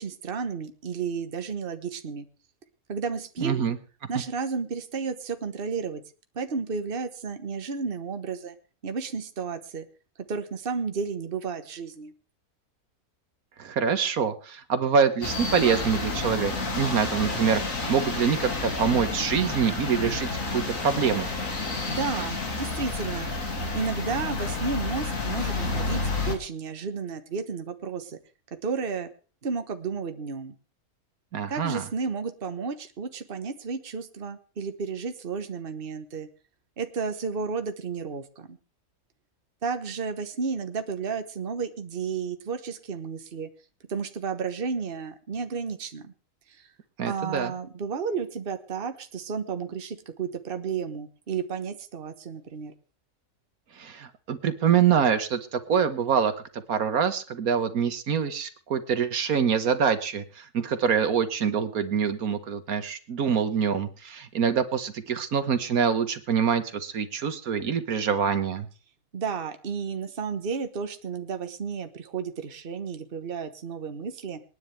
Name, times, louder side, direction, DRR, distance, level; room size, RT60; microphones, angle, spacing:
voice 1, 0.0-2.3 2.9-3.6 4.1-6.0 6.3-8.5 8.8-9.9 10.3-12.1 21.9-23.5 23.7-28.2 28.6-29.1 29.4-30.5 31.5-36.3 36.8-38.6 39.6-43.5 43.9-46.1 46.5-46.7 47.0-52.7 69.1-74.4, right 5 dB, 40° right, 8 dB, 1.4 m, -32 dB
voice 2, 3.4-3.8 13.6-17.6 17.9-21.3 31.3-31.8 47.0-47.5 53.8-68.7, right 7 dB, 75° right, 10 dB, 1.7 m, -25 dB
sound 1, 15.2-26.4, left 3 dB, 65° left, 2.9 m, -30 dB
27.0 x 9.9 x 3.4 m, 0.36 s
omnidirectional pair, 1.5 m